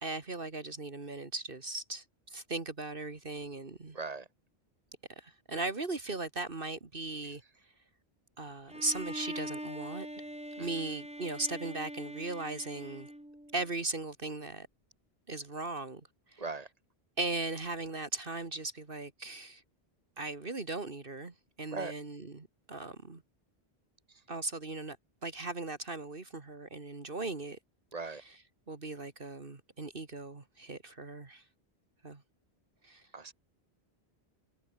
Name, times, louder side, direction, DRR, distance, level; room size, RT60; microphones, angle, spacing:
voice 1, 0.0-4.0 5.2-7.4 8.4-10.1 10.6-13.1 13.5-14.7 15.3-16.0 16.3-16.4 17.2-19.6 20.2-23.2 24.3-25.0 25.2-27.6 28.0-28.3 28.7-31.4 32.0-32.2 32.8-33.1, right 3 dB, 60° right, 2.3 m, -38 dB
voice 2, 3.9-4.3 10.6-10.7 16.4-16.7 21.7-21.9 27.9-28.2 33.1-33.3, right 4 dB, 35° right, 2.3 m, -38 dB
Bowed string instrument, 8.7-13.7, equal, 5° right, 1.9 m, -43 dB
omnidirectional pair, 1.1 m